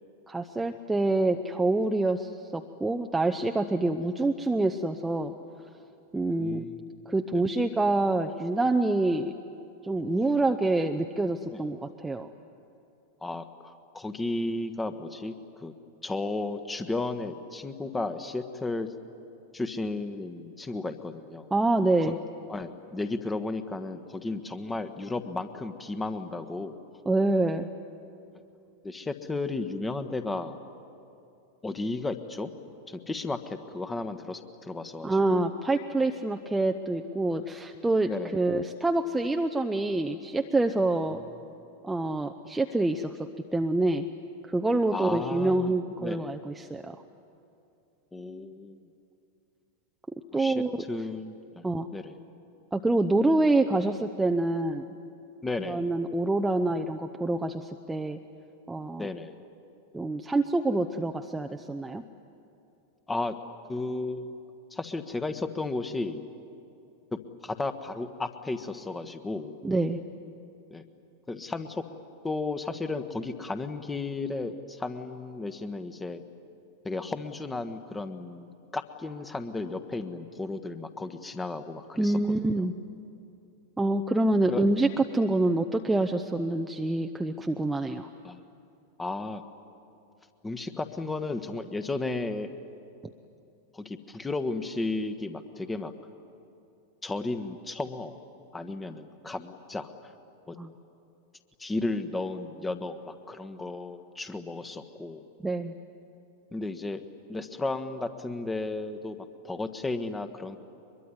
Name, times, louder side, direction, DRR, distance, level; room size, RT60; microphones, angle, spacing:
voice 1, 0.3-5.3 6.1-6.7 7.1-9.3 9.8-12.3 21.5-22.2 27.1-27.7 35.0-41.2 41.8-43.2 43.5-44.1 44.5-47.0 50.3-50.8 51.6-51.9 52.7-54.9 55.6-58.2 58.7-59.1 59.9-62.0 69.6-70.0 82.0-82.7 83.8-84.9 85.1-88.1 100.6-100.7 105.4-105.7, right 2 dB, 10° right, 4 dB, 0.8 m, -26 dB
voice 2, 6.2-6.8 7.3-7.4 11.5-11.6 13.2-15.3 15.6-15.7 16.0-18.9 19.5-21.5 22.0-22.1 22.5-26.8 28.8-30.6 31.6-32.5 32.9-35.4 38.0-38.4 44.9-45.7 46.0-46.3 48.1-48.8 50.3-51.7 51.9-52.1 55.4-55.9 59.0-59.3 63.1-63.3 63.7-64.3 64.7-66.2 67.1-69.6 70.7-70.8 71.3-71.8 72.2-76.2 76.8-82.2 82.5-82.6 84.5-84.6 88.2-88.4 89.0-89.4 90.4-92.5 93.7-95.9 97.0-98.2 98.5-100.1 100.5-100.6 101.6-105.2 106.5-107.0 107.3-110.6, left 2 dB, 10° left, 10 dB, 1.4 m, -34 dB
23.5 x 22.5 x 9.7 m, 2.7 s
figure-of-eight pair, 90°, 0 cm